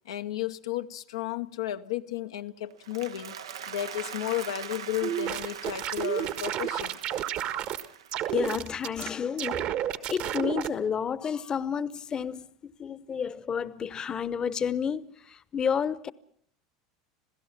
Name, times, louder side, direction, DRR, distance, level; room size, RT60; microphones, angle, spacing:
voice 1, 0.1-3.4 3.7-7.0, left 12 dB, 85° left, 0.8 m, -33 dB
Applause, 2.7-9.0, right 8 dB, 85° right, 0.8 m, -42 dB
sound 1, 5.0-7.8 8.1-9.1 9.4-10.7, right 11 dB, 60° right, 1.5 m, -31 dB
voice 2, 8.3-16.1, left 7 dB, 30° left, 0.9 m, -31 dB
27.0 x 16.5 x 7.4 m
hypercardioid pair, 90°, 2 cm